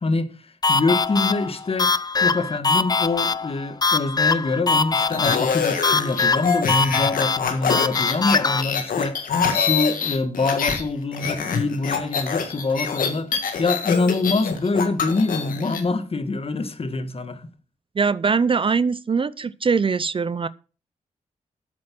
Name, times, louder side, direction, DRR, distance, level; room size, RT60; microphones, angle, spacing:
voice 1, 0.0-17.5, left 3 dB, 45° left, 1.4 m, -25 dB
sound 1, 0.6-8.6, left 4 dB, 30° left, 0.5 m, -22 dB
sound 2, 5.0-10.8 11.1-15.8, left 6 dB, 90° left, 1.9 m, -25 dB
voice 2, 18.0-20.5, right 5 dB, 40° right, 0.5 m, -22 dB
8.5 x 7.7 x 5.9 m
cardioid pair, 70°, 14 cm